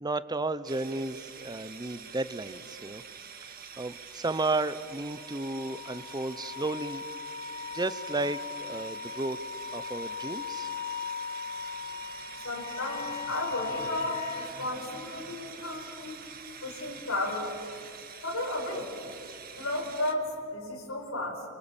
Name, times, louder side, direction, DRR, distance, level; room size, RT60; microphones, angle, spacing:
voice 1, 0.0-3.0 3.8-7.0 7.7-9.4 9.7-10.7, right 2 dB, 20° right, 14 dB, 0.8 m, -33 dB
sound 1, 0.7-20.1, right 6 dB, 45° right, 1.8 m, -46 dB
Wind instrument woodwind instrument, 5.0-14.5, left 6 dB, 25° left, 4.2 m, -38 dB
voice 2, 12.4-16.2 16.6-17.5 18.2-18.9 19.6-21.4, left 1 dB, 90° left, -1 dB, 5.2 m, -34 dB
29.0 x 25.5 x 7.3 m, 2.5 s
head